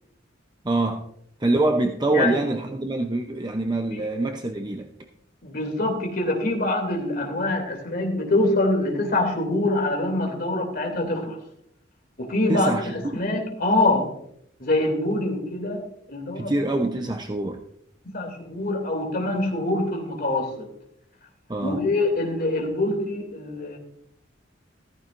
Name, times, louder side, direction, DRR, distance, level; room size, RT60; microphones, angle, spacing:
voice 1, 0.6-1.1 1.4-4.9 12.5-13.2 16.3-17.6 21.5-21.8, right 2 dB, 20° right, 4 dB, 0.7 m, -25 dB
voice 2, 2.1-2.4 3.9-4.0 5.4-11.4 12.2-14.1 14.6-16.5 18.0-20.7 21.6-23.8, left 2 dB, 50° left, 2 dB, 2.7 m, -25 dB
14.5 x 13.5 x 2.5 m, 0.72 s
head